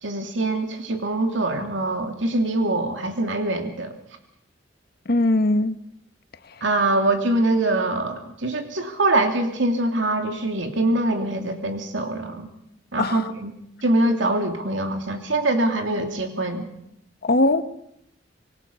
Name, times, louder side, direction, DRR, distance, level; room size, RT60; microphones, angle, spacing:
voice 1, 0.0-3.9 6.6-12.5 12.9-13.5 13.8-16.7, right 2 dB, 85° right, 2.8 m, -23 dB
voice 2, 5.1-5.8 13.0-13.2 17.2-17.6, left 2 dB, 55° left, 1.3 m, -20 dB
26.0 x 22.5 x 5.6 m
head